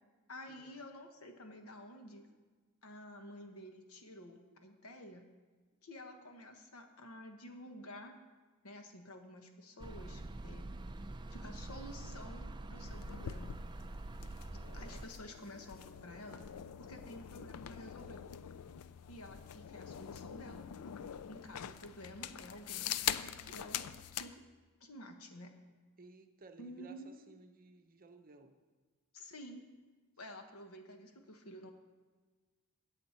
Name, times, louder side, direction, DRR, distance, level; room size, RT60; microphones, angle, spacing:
voice 1, 0.3-2.3 2.8-5.2 5.8-8.1 8.6-10.7 11.3-13.6 14.7-18.2 19.1-20.7 21.3-23.8 24.1-24.4 24.8-25.5 26.6-27.2 29.1-29.6 30.2-31.7, left 1 dB, 70° left, 5 dB, 1.2 m, -51 dB
sound 1, 9.8-15.1, right 2 dB, 20° right, 0.4 m, -45 dB
sound 2, 12.8-24.3, left 10 dB, 85° left, 0.4 m, -44 dB
voice 2, 26.0-28.5, right 3 dB, 40° right, 6 dB, 0.8 m, -57 dB
17.0 x 6.4 x 4.4 m, 1.4 s
head